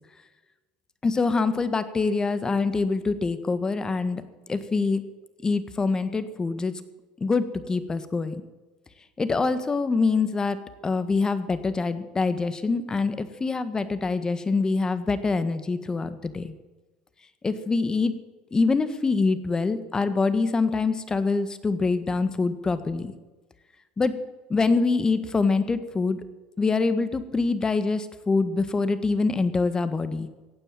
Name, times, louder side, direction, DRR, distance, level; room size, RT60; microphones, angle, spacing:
voice 1, 1.0-4.2 4.5-5.0 5.4-6.7 7.2-8.4 9.2-10.6 10.8-16.5 17.4-18.1 18.5-23.1 24.0-24.1 24.5-26.2 26.6-30.3, left 4 dB, 20° left, 12 dB, 1.6 m, -25 dB
16.0 x 9.2 x 9.0 m, 1.2 s
hypercardioid pair, 85°, 3 cm